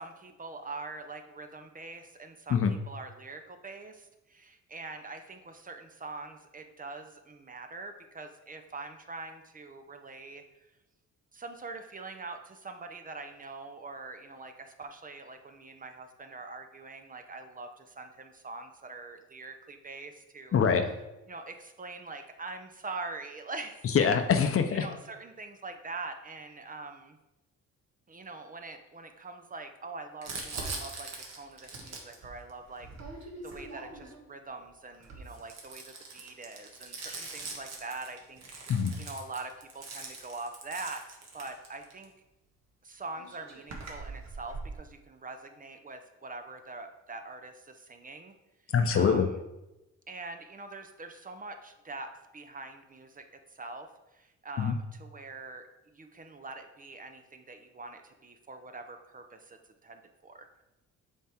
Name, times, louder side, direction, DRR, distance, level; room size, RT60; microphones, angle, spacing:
voice 1, 0.0-2.6 2.9-10.4 11.3-20.6 21.3-23.9 24.7-27.2 28.1-32.9 33.2-38.4 39.0-42.1 42.8-48.3 48.9-49.2 50.1-53.2 53.5-55.6 55.9-60.5, right 3 dB, 30° right, 6 dB, 0.6 m, -43 dB
voice 2, 20.5-20.9 23.8-24.9 38.7-38.9 48.7-49.3 54.6-54.7, left 6 dB, 45° left, 7 dB, 0.7 m, -24 dB
Crumpling crinkling, 30.2-34.3 34.9-42.0 42.9-43.0 43.2-44.7, right 3 dB, 60° right, 1.5 m, -42 dB
7.2 x 3.6 x 4.4 m, 0.97 s
cardioid pair, 90°, 30 cm